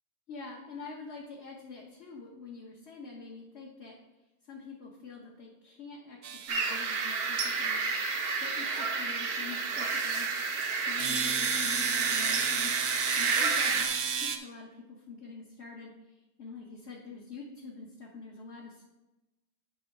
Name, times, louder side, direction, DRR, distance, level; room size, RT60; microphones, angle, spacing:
voice 1, 0.3-4.0 4.4-7.8 8.3-10.3 10.8-12.7 13.2-18.8, left 4 dB, 50° left, -3 dB, 1.3 m, -46 dB
sound 1, 6.2-8.9 11.0-14.4, right 7 dB, 65° right, 1.0 m, -34 dB
sound 2, 6.5-13.8, right 4 dB, 90° right, 1.5 m, -30 dB
10.0 x 3.5 x 5.4 m, 1.0 s
omnidirectional pair, 1.6 m